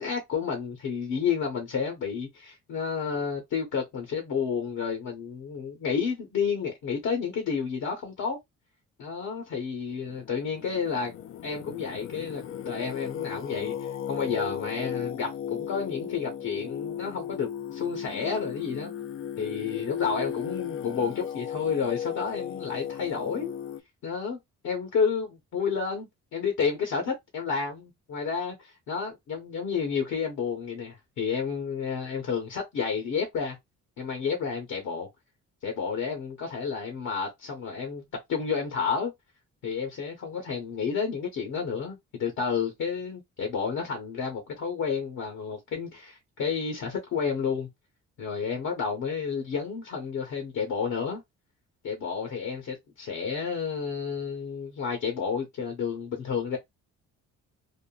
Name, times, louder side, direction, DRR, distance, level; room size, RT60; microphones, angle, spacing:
voice 1, 0.0-8.4 9.0-11.1 11.4-18.9 19.4-23.5 24.0-24.4 24.6-33.6 34.0-35.1 35.6-39.1 39.6-47.7 48.2-51.2 51.8-56.6, left 6 dB, 70° left, 1.1 m, -31 dB
Singing, 9.9-23.8, left 9 dB, 45° left, 0.4 m, -36 dB
3.6 x 2.1 x 2.4 m
cardioid pair, 90°, 30 cm